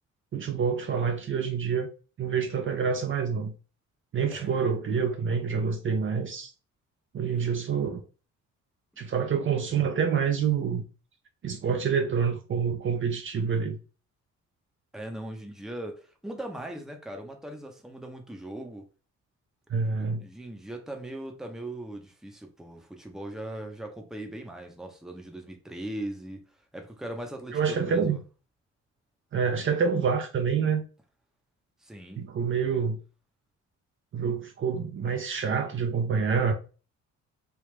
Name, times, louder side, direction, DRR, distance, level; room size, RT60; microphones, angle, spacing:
voice 1, 0.3-1.9 2.2-3.5 4.1-6.5 7.1-8.0 9.0-10.8 11.4-13.8 19.7-20.2 27.5-28.2 29.3-30.8 32.2-33.0 34.1-36.5, right 6 dB, 40° right, 0.5 m, -27 dB
voice 2, 14.9-18.9 20.0-26.4 26.7-28.2 31.8-32.2, right 1 dB, ahead, 0.7 m, -39 dB
3.3 x 2.4 x 3.2 m
cardioid pair, 90°, 30 cm